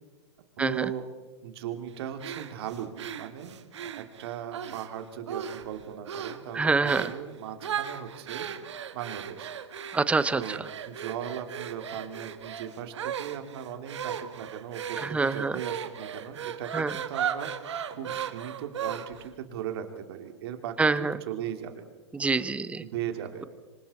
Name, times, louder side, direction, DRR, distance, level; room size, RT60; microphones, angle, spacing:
voice 1, 0.6-1.1 1.4-3.5 3.8-8.5 8.9-9.5 10.3-21.8 22.8-23.5, right 9 dB, 60° right, 6 dB, 2.9 m, -38 dB
sound 1, 2.2-4.9 5.3-5.7 6.1-6.4 6.8-7.2 7.6-19.3, right 8 dB, 80° right, 1.6 m, -36 dB
voice 2, 6.5-7.1 9.9-10.6 15.1-15.5 16.7-16.9 20.8-21.1 22.1-22.8, right 4 dB, 10° right, 15 dB, 0.8 m, -25 dB
26.0 x 25.0 x 4.3 m, 1.3 s
hypercardioid pair, 125°, 15 cm